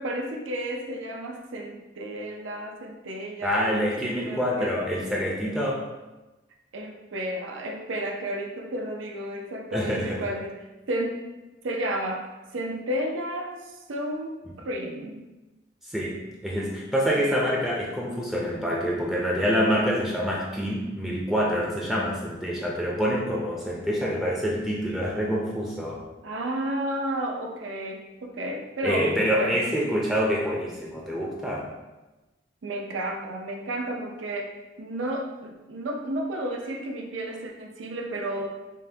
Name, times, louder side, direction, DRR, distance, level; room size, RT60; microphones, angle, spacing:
voice 1, 0.0-4.8 6.7-10.5 10.9-11.3 11.6-12.3 12.5-14.4 14.6-15.3 26.2-29.1 29.4-29.6 32.6-38.5, right 1 dB, 85° right, 2 dB, 0.5 m, -32 dB
voice 2, 3.4-5.8 9.7-10.2 15.9-16.1 16.4-26.0 28.8-31.7, equal, ahead, -4 dB, 0.4 m, -26 dB
5.4 x 2.2 x 2.7 m, 1.1 s
head